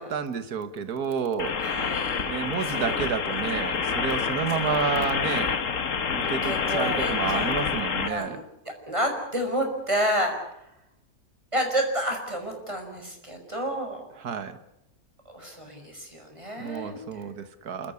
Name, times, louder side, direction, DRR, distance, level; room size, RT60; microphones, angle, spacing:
voice 1, 0.0-1.6 2.3-8.4 14.2-14.6 16.6-17.9, right 6 dB, 85° right, 11 dB, 1.9 m, -30 dB
sound 1, 1.4-8.1, left 6 dB, 60° left, 1.7 m, -27 dB
voice 2, 1.6-2.2 2.7-3.1 4.6-4.8 6.4-7.5 8.1-8.4 8.9-10.6 11.5-14.0 15.3-17.0, equal, 20° right, 3 dB, 5.8 m, -30 dB
29.0 x 14.0 x 9.6 m, 0.81 s
omnidirectional pair, 1.6 m